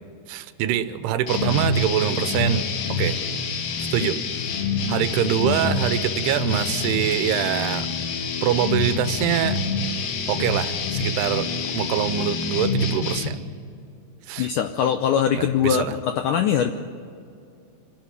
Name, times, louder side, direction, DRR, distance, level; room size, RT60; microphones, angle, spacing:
voice 1, 0.3-2.7 3.0-3.2 3.9-4.2 4.9-7.9 8.4-9.6 10.3-13.4 14.3-14.5 15.4-15.9, right 10 dB, 90° right, 12 dB, 2.9 m, -24 dB
sound 1, 1.3-13.3, left 4 dB, 70° left, 3.2 m, -26 dB
voice 2, 14.4-16.7, left 8 dB, 85° left, 7 dB, 1.8 m, -22 dB
26.0 x 11.0 x 9.8 m, 2.4 s
omnidirectional pair, 4.5 m